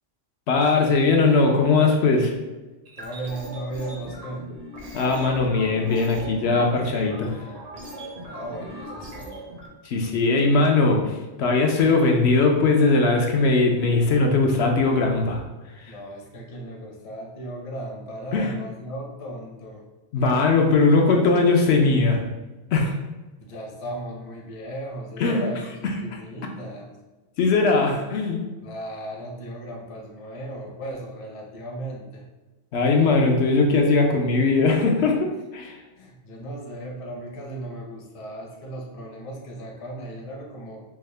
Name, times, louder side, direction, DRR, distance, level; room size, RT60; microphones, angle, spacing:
voice 1, 0.5-2.3 4.9-7.4 9.8-11.0 11.4-15.4 18.3-18.5 20.1-22.2 22.7-22.9 25.2-25.5 27.4-28.4 32.7-35.3 35.5-35.8, left 3 dB, 75° left, 2 dB, 0.9 m, -20 dB
sound 1, 2.8-9.7, right 1 dB, 45° right, 0.6 m, -38 dB
voice 2, 3.0-4.5 8.2-9.5 15.9-19.8 23.4-26.9 28.6-32.2 36.0-40.8, right 1 dB, 35° left, 0 dB, 0.6 m, -36 dB
4.5 x 2.0 x 3.2 m, 1.2 s
omnidirectional pair, 1.2 m